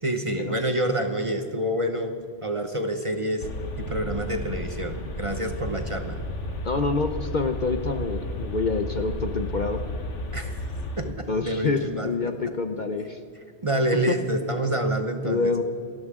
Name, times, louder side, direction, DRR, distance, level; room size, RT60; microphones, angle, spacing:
voice 1, 0.0-2.1 2.4-3.5 3.8-6.2 10.3-10.5 11.0-11.1 11.4-12.3 13.6-15.6, right 1 dB, 30° right, 6 dB, 0.9 m, -27 dB
sound 1, 3.4-11.1, left 1 dB, 75° left, 1.6 m, -33 dB
voice 2, 6.6-9.8 11.0-13.2 14.1-14.2 15.2-15.6, left 4 dB, 45° left, 7 dB, 0.8 m, -27 dB
28.0 x 12.5 x 3.7 m, 2.2 s
omnidirectional pair, 1.2 m